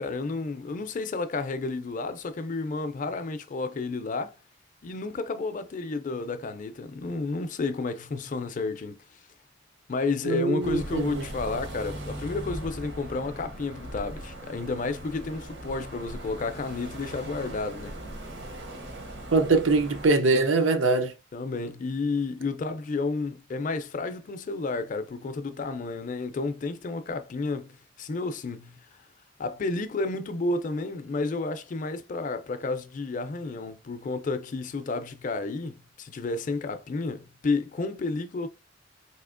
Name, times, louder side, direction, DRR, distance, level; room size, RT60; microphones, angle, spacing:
voice 1, 0.0-4.4 4.8-9.0 9.9-18.0 21.3-28.8 29.4-38.5, left 3 dB, 45° left, 0.4 m, -31 dB
voice 2, 10.2-11.2 19.3-21.1, right 3 dB, 80° right, 0.6 m, -23 dB
sound 1, 10.6-20.1, right 1 dB, 60° right, 0.9 m, -39 dB
4.2 x 2.8 x 2.5 m
head